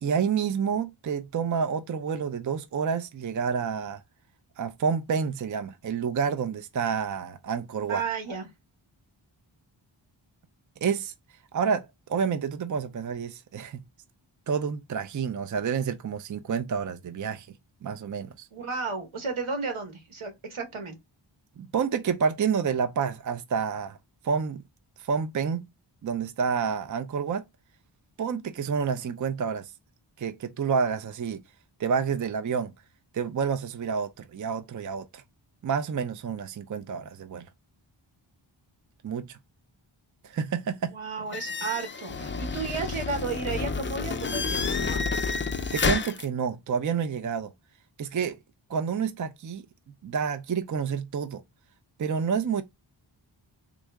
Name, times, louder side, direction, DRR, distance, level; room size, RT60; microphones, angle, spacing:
voice 1, 0.0-4.0 4.6-8.0 10.8-11.1 11.5-13.8 14.5-17.5 17.8-18.5 21.6-24.0 24.2-24.6 25.0-25.7 26.0-27.4 28.2-29.7 30.2-31.4 31.8-32.7 33.1-35.2 35.6-37.5 39.0-39.4 40.2-40.9 45.7-47.5 48.0-48.4 48.7-49.6 50.0-51.4 52.0-52.6, right 6 dB, 40° right, 0.4 m, -29 dB
voice 2, 7.9-8.5 18.5-21.0 40.9-45.0, right 4 dB, 80° right, 1.2 m, -33 dB
sound 1, 41.3-46.2, left 4 dB, 25° left, 0.4 m, -29 dB
3.6 x 2.0 x 3.4 m
wide cardioid pair, 60°, 48 cm